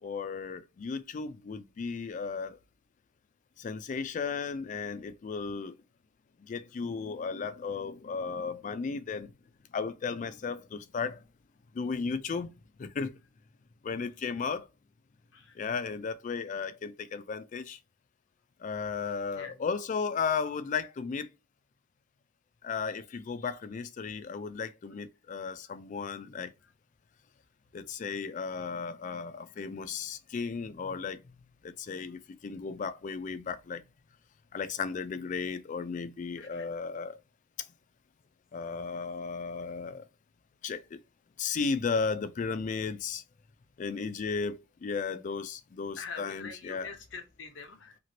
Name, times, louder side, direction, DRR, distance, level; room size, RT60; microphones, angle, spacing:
voice 1, 0.0-2.6 3.6-5.8 6.4-9.3 9.7-11.2 11.7-12.5 12.8-13.1 13.8-14.7 15.6-17.8 18.6-21.3 22.6-26.5 27.7-31.2 31.6-33.8 34.5-37.2 38.5-40.1 40.6-41.0 41.4-43.2 43.8-46.9, left 5 dB, 40° left, 0.3 m, -35 dB
voice 2, 15.3-15.7 19.3-19.6 36.4-36.7 46.0-48.0, left 5 dB, 65° left, 0.8 m, -45 dB
3.0 x 2.8 x 2.7 m
head